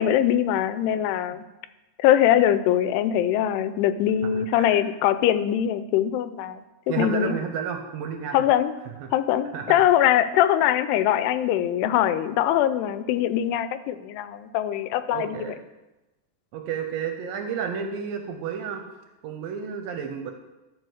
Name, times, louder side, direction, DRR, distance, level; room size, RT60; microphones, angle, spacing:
voice 1, 0.0-1.5 2.0-6.6 6.9-7.4 8.3-8.8 9.1-15.5, left 11 dB, 90° left, 13 dB, 2.6 m, -22 dB
voice 2, 4.3-4.9 6.9-8.4 9.0-9.1 9.5-9.7 15.1-15.6 16.5-18.8 19.2-20.3, right 7 dB, 80° right, 5 dB, 2.2 m, -31 dB
13.0 x 4.5 x 6.4 m, 1.1 s
omnidirectional pair, 4.6 m